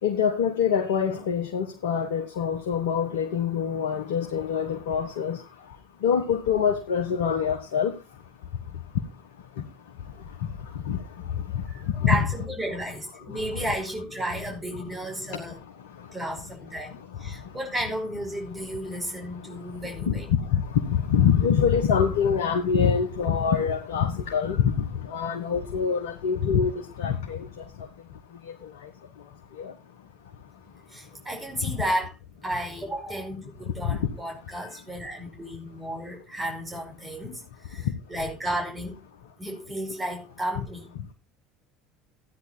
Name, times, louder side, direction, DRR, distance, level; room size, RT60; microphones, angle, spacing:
voice 1, 0.0-8.0 8.7-8.8 9.6-9.7 10.0-12.2 13.3-13.7 14.3-14.4 14.8-16.5 16.8-17.6 18.5-27.9 28.4-28.9 29.5-29.7 31.6-31.8 33.8-34.1 34.5-34.8 37.8-37.9, left 7 dB, 75° left, 1.5 m, -26 dB
voice 2, 11.7-15.6 16.1-20.3 30.9-32.1 32.4-38.9 39.4-40.9, right 1 dB, 15° right, 5.1 m, -33 dB
14.0 x 9.8 x 4.1 m
hypercardioid pair, 70°, 0 cm